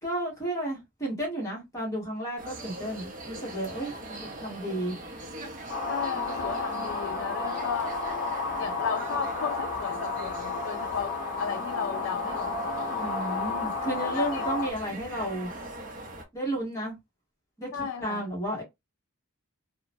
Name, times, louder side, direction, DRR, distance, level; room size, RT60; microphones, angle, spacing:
voice 1, 0.0-4.9 13.0-15.5 16.3-17.0 17.6-17.7 18.0-18.6, right 1 dB, 15° left, 1.2 m, -32 dB
sound 1, 2.4-16.2, right 1 dB, 40° right, 0.7 m, -42 dB
sound 2, 5.7-14.7, left 4 dB, 40° left, 0.7 m, -32 dB
voice 2, 5.9-8.0 8.6-12.6 12.9-13.0 14.0-14.4 15.2-15.3 17.7-18.2, left 7 dB, 60° left, 0.3 m, -35 dB
2.9 x 2.1 x 2.6 m
head